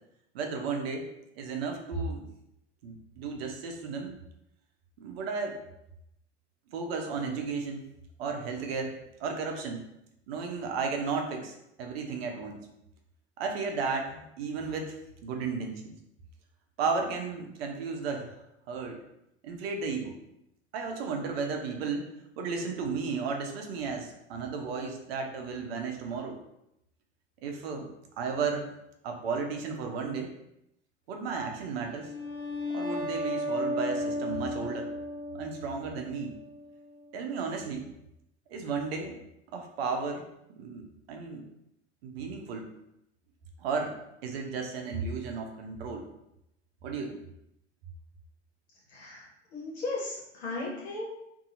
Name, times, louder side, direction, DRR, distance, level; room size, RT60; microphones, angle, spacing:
voice 1, 0.3-1.1 1.4-2.2 2.8-4.2 5.0-5.6 6.7-7.8 8.2-8.9 9.2-9.8 10.3-11.5 11.8-12.6 13.4-14.9 15.2-15.9 16.8-18.3 18.7-19.0 19.4-20.2 20.7-22.0 22.4-26.4 27.4-27.9 28.2-28.7 29.0-30.3 31.1-32.1 32.7-34.9 35.3-36.3 37.1-37.9 38.5-39.2 39.5-40.2 40.6-41.4 42.0-42.7 43.6-44.0 44.2-46.0 46.8-47.2, right 4 dB, 60° right, 3 dB, 0.6 m, -34 dB
sound 1, 31.8-37.0, left 1 dB, 45° left, 1.0 m, -35 dB
voice 2, 48.9-51.1, left 2 dB, 70° left, -4 dB, 1.3 m, -36 dB
2.7 x 2.6 x 2.5 m, 0.81 s
hypercardioid pair, 90°, 34 cm